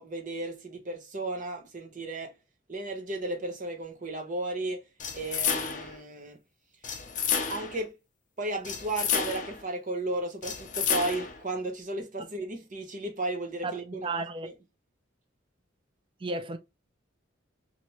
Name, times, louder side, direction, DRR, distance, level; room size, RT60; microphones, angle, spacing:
voice 1, 0.0-2.3 2.7-4.8 5.1-6.4 7.5-7.9 8.4-14.5, right 2 dB, 40° right, 0.8 m, -34 dB
sound 1, 5.0-6.0 6.8-7.8 8.6-9.6 10.4-11.4, left 7 dB, 40° left, 0.5 m, -30 dB
voice 2, 13.6-14.5 16.2-16.6, right 3 dB, 25° right, 0.3 m, -34 dB
2.8 x 2.5 x 3.0 m
head